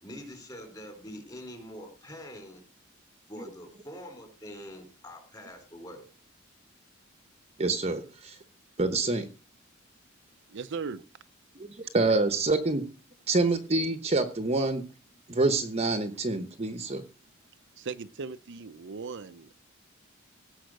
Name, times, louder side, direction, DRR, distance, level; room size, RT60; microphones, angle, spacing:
voice 1, 0.0-2.6 3.3-6.1, equal, 20° left, 4 dB, 4.0 m, -44 dB
voice 2, 7.6-8.4 8.8-9.3 11.6-11.7 11.9-12.9 13.3-14.8 15.3-17.0, right 2 dB, 30° right, 9 dB, 1.0 m, -26 dB
voice 3, 10.5-11.0 17.8-19.7, right 5 dB, 60° right, 11 dB, 0.6 m, -38 dB
17.0 x 5.7 x 6.5 m, 0.36 s
head